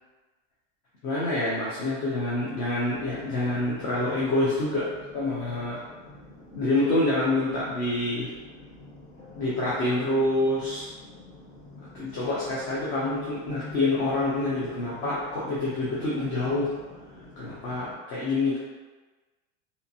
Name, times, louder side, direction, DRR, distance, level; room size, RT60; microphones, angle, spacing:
voice 1, 1.0-4.9 5.1-5.8 6.5-8.3 9.4-10.9 11.9-16.7 17.4-18.6, left 2 dB, 30° left, -8 dB, 0.4 m, -27 dB
sound 1, 2.9-17.9, left 1 dB, 85° left, 1.3 m, -48 dB
2.6 x 2.4 x 2.6 m, 1.3 s
supercardioid pair, 155°, 39 cm